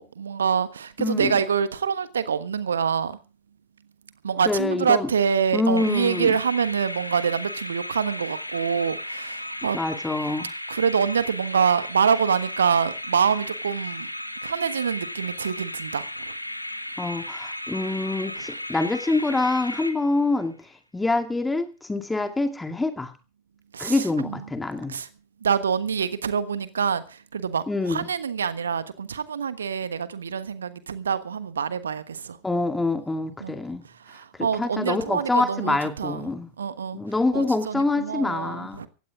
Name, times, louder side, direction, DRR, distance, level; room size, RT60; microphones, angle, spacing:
voice 1, 0.0-3.2 4.2-9.8 10.7-14.1 14.4-16.3 18.5-18.6 23.7-24.4 24.9-25.1 25.4-32.4 33.4-33.5 33.9-36.3 36.6-37.0 37.3-38.9, right 7 dB, 70° right, 1.3 m, -26 dB
voice 2, 1.0-1.3 4.5-5.1 5.5-6.4 9.7-10.5 17.0-20.7 20.9-23.1 23.8-24.9 27.7-28.1 32.4-33.9 34.6-36.5 36.9-38.8, left 2 dB, 10° left, 2.3 m, -25 dB
sound 1, 5.8-20.4, left 1 dB, 85° left, 1.5 m, -35 dB
18.5 x 16.0 x 3.6 m
figure-of-eight pair, 90°, 0 cm